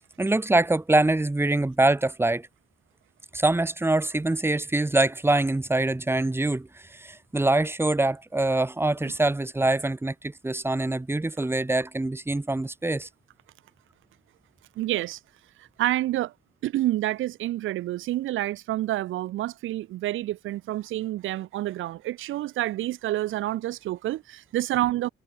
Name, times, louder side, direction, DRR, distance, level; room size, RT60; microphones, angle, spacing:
voice 1, 0.2-2.5 3.3-13.1, right 2 dB, 10° right, 1.9 m, -24 dB
voice 2, 14.8-15.2 15.6-16.3 16.6-25.1, right 15 dB, 80° right, 1.0 m, -28 dB
cardioid pair, 90°, 20 cm